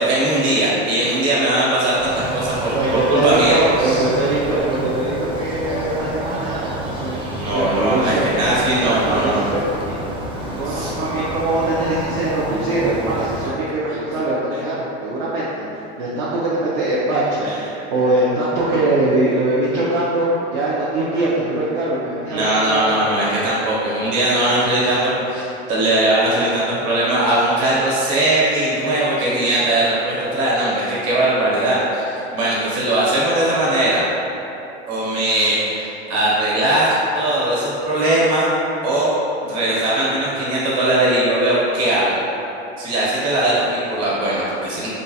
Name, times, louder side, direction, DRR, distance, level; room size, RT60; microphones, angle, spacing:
voice 1, 0.0-4.0 7.4-9.5 10.7-10.8 13.4-13.5 16.3-16.4 17.4-17.5 22.3-34.0 34.9-38.5 38.8-39.1 39.4-42.1 42.8-44.9, right 1 dB, 50° right, -7 dB, 1.3 m, -19 dB
sound 1, 2.0-13.5, equal, 15° right, 0.4 m, -29 dB
voice 2, 2.7-7.2 7.5-8.6 8.8-10.0 10.4-15.7 16.0-17.5 17.9-22.9, right 2 dB, 70° right, -8 dB, 0.7 m, -21 dB
3.7 x 2.3 x 2.7 m, 2.8 s
supercardioid pair, 110°, 32 cm